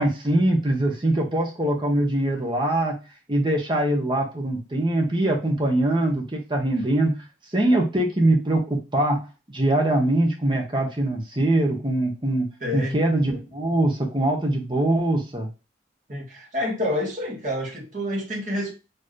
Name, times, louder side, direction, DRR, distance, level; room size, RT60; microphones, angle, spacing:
voice 1, 0.0-3.0 3.3-7.2 7.5-12.5 12.7-15.5, right 1 dB, 25° right, 1.1 m, -23 dB
voice 2, 12.6-13.0 16.1-18.7, left 1 dB, 45° right, 1.6 m, -28 dB
4.4 x 3.1 x 3.2 m
head